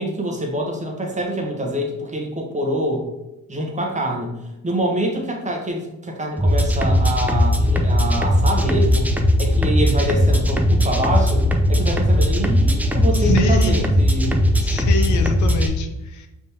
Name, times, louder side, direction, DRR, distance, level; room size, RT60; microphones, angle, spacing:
voice 1, 0.0-3.0 3.5-9.1 9.4-14.4, right 1 dB, 25° right, 1 dB, 1.1 m, -25 dB
sound 1, 6.4-15.7, left 1 dB, 5° right, 0.5 m, -18 dB
voice 2, 13.2-13.9 14.6-16.3, left 4 dB, 70° left, 6 dB, 0.7 m, -26 dB
5.2 x 3.6 x 2.8 m, 0.95 s
cardioid pair, 90°, 30 cm